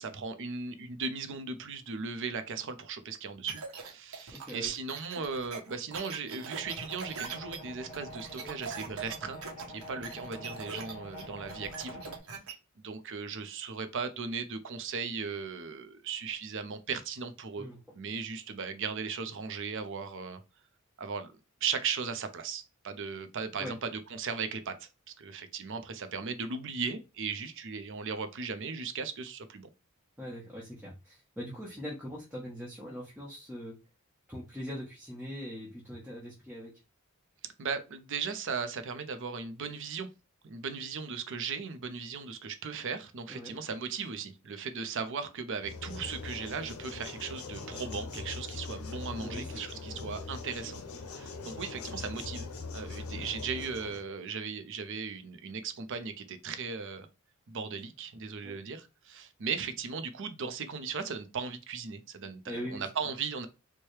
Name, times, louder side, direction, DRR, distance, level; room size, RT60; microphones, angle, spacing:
voice 1, 0.0-9.4 9.7-12.0 12.8-20.4 21.0-21.3 21.6-24.9 25.2-29.7 37.6-40.1 40.4-50.8 51.1-57.1 57.5-63.5, right 5 dB, 60° right, 0.6 m, -37 dB
sound 1, 3.5-12.5, right 5 dB, 80° right, 0.9 m, -42 dB
voice 2, 4.3-4.7 17.6-17.8 23.6-23.7 30.2-33.7 34.3-36.7 43.3-43.6 49.2-50.0 58.4-58.6 62.4-62.9, equal, 10° right, 0.9 m, -41 dB
sound 2, 6.5-12.2, equal, 30° left, 1.4 m, -46 dB
sound 3, 45.6-54.0, left 4 dB, 80° left, 0.6 m, -41 dB
4.5 x 2.2 x 3.2 m
head